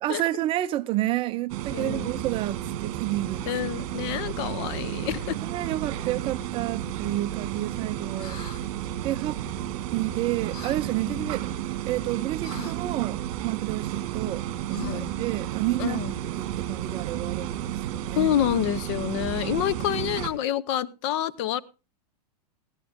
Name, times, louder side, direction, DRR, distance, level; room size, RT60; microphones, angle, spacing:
voice 1, 0.0-3.5 5.4-8.4 9.0-9.4 9.9-11.5 11.9-16.0 16.4-18.3, right 15 dB, 25° right, 0.6 m, -30 dB
sound 1, 1.5-20.3, right 12 dB, 45° right, 1.8 m, -32 dB
voice 2, 1.7-2.1 3.5-5.4 11.0-11.4 14.9-15.1 15.8-16.1 18.2-21.6, left 12 dB, 45° left, 0.7 m, -28 dB
sound 2, 8.2-8.6 10.5-10.8 12.4-12.8 14.7-15.2, left 8 dB, 70° left, 1.7 m, -40 dB
15.0 x 11.0 x 3.6 m
hypercardioid pair, 140°, 21 cm